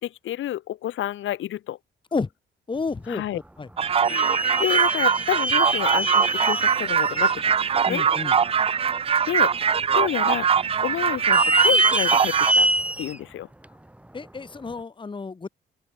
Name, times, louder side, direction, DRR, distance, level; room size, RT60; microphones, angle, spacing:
voice 1, 0.0-1.8 3.1-3.4 4.1-8.0 9.3-12.7 13.0-13.5, left 13 dB, 80° left, 2.8 m, -30 dB
voice 2, 2.7-3.7 7.9-8.3 14.1-15.5, left 4 dB, 25° left, 1.5 m, -31 dB
sound 1, 3.2-3.4 4.0-7.4 7.9-8.0 8.7-8.8 9.6-10.1 10.3-10.4 11.2-13.2 13.6-13.7 14.7-14.8, right 1 dB, 5° right, 1.6 m, -25 dB
sound 2, 3.8-12.5, right 7 dB, 30° right, 0.4 m, -22 dB
open air
cardioid pair, 90°, 20 cm